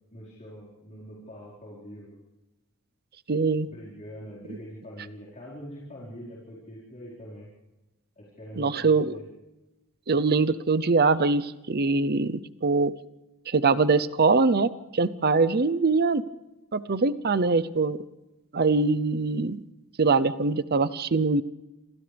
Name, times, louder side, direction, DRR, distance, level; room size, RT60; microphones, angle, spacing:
voice 1, 0.1-2.2 3.7-7.5 8.2-9.2, equal, 35° left, -6 dB, 4.9 m, -43 dB
voice 2, 3.3-3.7 4.5-4.6 8.6-9.2 10.1-12.9 13.5-16.2 16.7-18.0 18.5-19.6 20.0-21.4, right 4 dB, 45° right, 14 dB, 0.7 m, -23 dB
28.5 x 26.5 x 3.5 m, 1.0 s
head